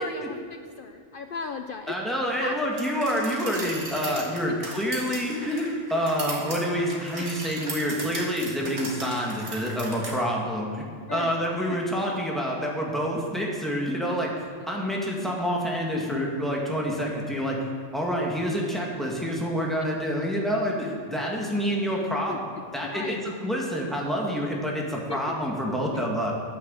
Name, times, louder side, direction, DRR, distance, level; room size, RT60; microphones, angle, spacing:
voice 1, 0.0-1.9 2.4-2.6 5.9-6.0 11.1-11.3 11.7-11.8 15.2-15.4 15.9-16.3 21.9-22.4 22.7-23.2 24.3-24.4 25.1-25.4 25.9-26.0, left 5 dB, 60° left, 7 dB, 0.6 m, -37 dB
voice 2, 1.9-10.9 11.1-17.6 17.9-22.4 22.7-26.3, equal, ahead, -2 dB, 1.9 m, -27 dB
sound 1, 2.8-10.2, right 2 dB, 65° right, 2.1 m, -37 dB
9.7 x 8.7 x 7.5 m, 2.1 s
omnidirectional pair, 1.3 m